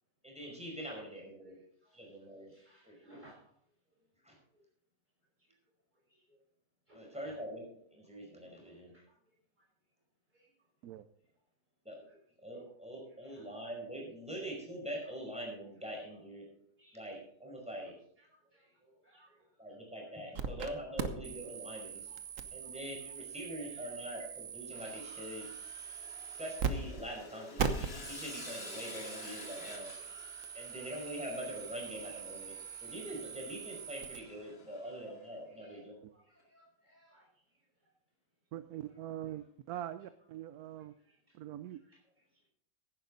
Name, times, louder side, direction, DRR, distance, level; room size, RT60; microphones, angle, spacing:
voice 1, 0.2-1.6 1.9-2.5 2.9-3.2 4.2-4.3 6.9-7.6 7.9-8.9 11.9-12.0 12.4-16.5 16.9-17.9 19.6-22.1 22.5-25.5 26.4-29.9 30.5-36.0, equal, 5° right, -1 dB, 5.3 m, -44 dB
voice 2, 1.4-4.1 4.5-4.7 5.4-5.6 5.9-6.4 6.9-7.5 8.7-9.7 10.3-10.7 11.9-12.7 13.1-13.5 14.2-14.3 15.0-15.1 15.6-15.8 16.1-16.2 16.4-17.1 18.2-20.6 20.9-21.2 21.7-22.4 22.6-22.7 23.0-24.1 24.7-24.8 25.2-25.5 26.3-26.5 27.5-27.7 29.7-30.9 32.0-32.7 33.9-37.9 38.9-39.5 40.7-41.4 41.7-42.5, equal, 25° right, -1 dB, 5.4 m, -66 dB
sound 1, 20.3-20.7 21.0-26.7 27.0-27.1 27.6-34.2, right 6 dB, 55° right, 1.3 m, -41 dB
Sawing, 24.7-35.0, left 3 dB, 35° left, 2.1 m, -51 dB
voice 3, 38.5-40.9 41.3-41.8, right 12 dB, 70° right, 12 dB, 1.0 m, -43 dB
15.5 x 10.5 x 4.0 m, 0.65 s
omnidirectional pair, 1.8 m